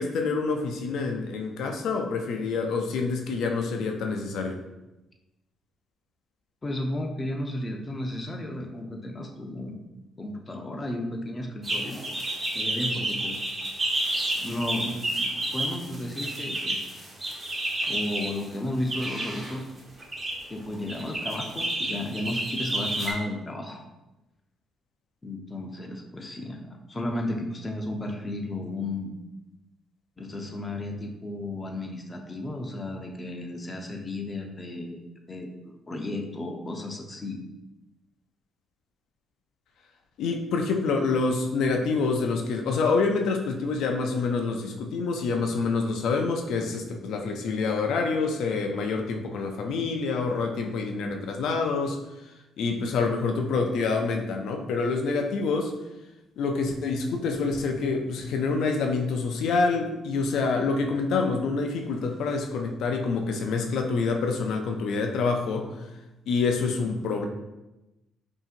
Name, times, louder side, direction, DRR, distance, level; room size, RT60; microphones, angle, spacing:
voice 1, 0.0-4.6 40.2-52.3 52.6-55.7 56.4-65.9 66.3-67.3, left 4 dB, 80° left, 3 dB, 0.4 m, -27 dB
voice 2, 6.6-9.7 10.2-12.0 12.5-13.4 14.4-16.9 17.9-19.7 20.5-23.8 25.2-29.1 30.2-37.4, left 1 dB, 25° left, 2 dB, 0.6 m, -34 dB
sound 1, 11.6-18.3 18.9-19.6 20.0-20.3 20.9-23.1, right 1 dB, 25° right, 1.0 m, -30 dB
5.4 x 2.8 x 2.5 m, 0.98 s
cardioid pair, 90°, 0 cm